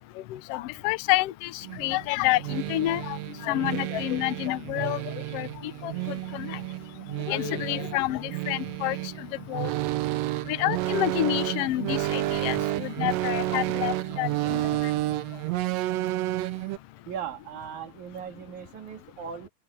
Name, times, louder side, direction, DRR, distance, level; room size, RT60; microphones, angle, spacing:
voice 1, 0.3-3.2 3.4-5.0 5.3-5.9 6.3-6.6 7.3-9.0 9.5-9.7 10.5-14.8, left 17 dB, 90° left, 1.3 m, -28 dB
sound 1, 1.6-16.8, right 16 dB, 85° right, 1.4 m, -31 dB
voice 2, 17.1-19.5, right 8 dB, 70° right, 3.5 m, -38 dB
open air
omnidirectional pair, 3.6 m